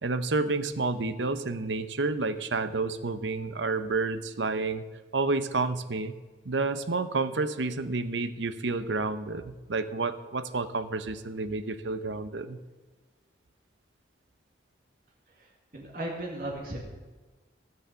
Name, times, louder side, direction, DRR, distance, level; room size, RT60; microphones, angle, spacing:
voice 1, 0.0-4.8 5.1-6.1 6.4-12.6, right 3 dB, 90° right, 11 dB, 0.8 m, -30 dB
voice 2, 15.3-16.8, right 1 dB, 50° right, -2 dB, 2.2 m, -36 dB
15.5 x 7.2 x 6.8 m, 1.3 s
head